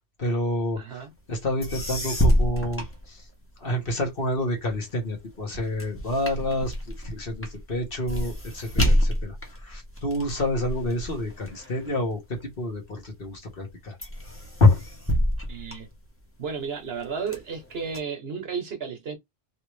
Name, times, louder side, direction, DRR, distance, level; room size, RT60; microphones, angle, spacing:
voice 1, 0.2-3.3 3.6-14.0 14.6-14.8, left 1 dB, 50° left, 1.4 m, -28 dB
voice 2, 0.8-1.1 15.5-15.9 16.4-19.2, right 6 dB, 55° right, 1.1 m, -33 dB
sound 1, 1.3-1.4 1.6-3.7 4.2-12.8 13.3-13.7 14.0-16.5 17.0-18.0, equal, 15° left, 0.7 m, -28 dB
3.2 x 3.0 x 3.1 m
omnidirectional pair, 1.3 m